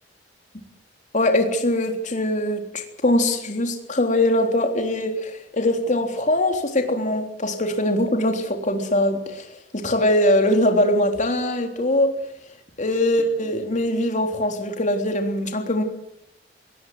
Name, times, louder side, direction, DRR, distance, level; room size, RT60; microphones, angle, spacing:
voice 1, 1.1-12.2 12.8-15.8, left 1 dB, 45° left, 5 dB, 3.5 m, -22 dB
21.5 x 18.0 x 8.0 m, 0.77 s
head